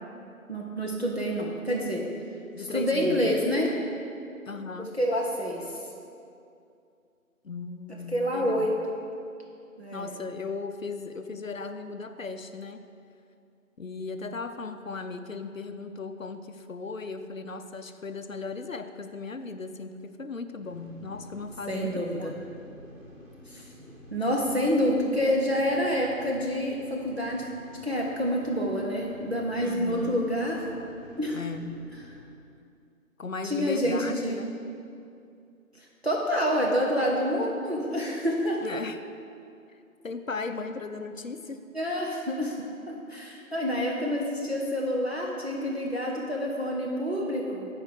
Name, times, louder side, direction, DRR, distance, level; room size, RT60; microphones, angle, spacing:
voice 1, 0.5-2.0 2.7-3.7 4.8-5.6 8.1-8.8 9.8-10.1 21.7-22.3 23.5-23.6 24.1-27.4 27.8-30.7 31.2-31.4 33.4-34.4 35.8-38.6 41.7-47.7, equal, 45° right, -2 dB, 0.8 m, -28 dB
voice 2, 2.5-3.4 4.5-4.9 7.4-8.7 9.9-12.9 13.8-22.3 29.6-30.3 31.3-31.8 33.2-34.5 38.6-39.0 40.0-41.6, left 4 dB, 65° left, 8 dB, 0.5 m, -37 dB
sound 1, 20.6-32.2, left 1 dB, ahead, 1.5 m, -49 dB
7.0 x 4.6 x 6.6 m, 2.5 s
figure-of-eight pair, 180°, 43 cm